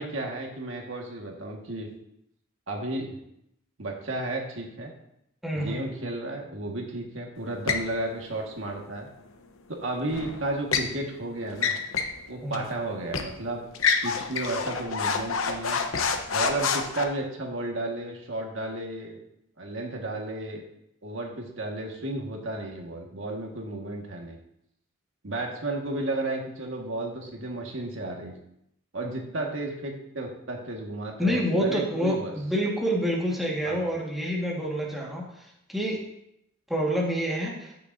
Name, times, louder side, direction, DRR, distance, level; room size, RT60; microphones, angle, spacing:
voice 1, 0.0-1.9 2.7-3.2 3.8-4.9 5.5-9.1 9.7-11.7 12.3-13.6 14.0-15.8 16.3-19.2 19.6-20.6 21.0-24.4 25.2-28.3 28.9-32.3 33.6-33.9, right 2 dB, 70° right, 1 dB, 1.6 m, -33 dB
voice 2, 5.4-5.9 12.4-12.7 31.2-35.2 35.7-36.0 36.7-37.7, equal, ahead, -4 dB, 1.6 m, -27 dB
sound 1, 7.7-7.9 10.1-10.9 11.5-12.2 12.5-12.6 13.1-13.3 13.7-17.0, left 5 dB, 80° left, 0.9 m, -27 dB
14.5 x 6.7 x 2.6 m, 0.77 s
head